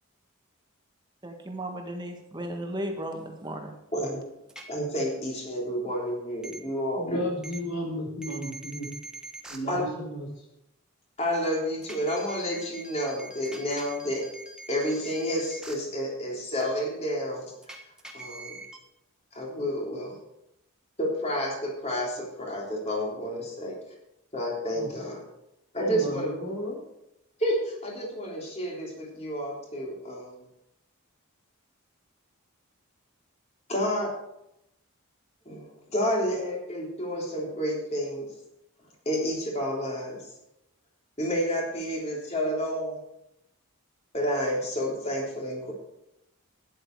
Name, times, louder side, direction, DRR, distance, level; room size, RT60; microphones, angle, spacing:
voice 1, 1.2-3.7, right 1 dB, 20° right, 3 dB, 1.6 m, -35 dB
sound 1, 4.5-4.6 6.4-6.6 7.4-7.6 8.2-9.6 11.8-15.7 17.6-18.8, right 2 dB, 5° right, 1.3 m, -43 dB
voice 2, 4.7-7.2 9.7-9.9 11.2-14.2 14.7-17.5 18.1-18.6 19.3-20.1 21.0-23.8 24.3-25.2 25.7-26.3 27.4-30.3 33.7-34.1 35.5-38.3 39.1-40.2 41.2-43.0 44.1-45.7, equal, 30° left, -2 dB, 3.6 m, -30 dB
voice 3, 6.9-8.9 9.5-10.3 24.7-24.9 25.8-26.8, equal, 60° left, 0 dB, 4.1 m, -33 dB
12.5 x 10.5 x 4.7 m, 0.83 s
head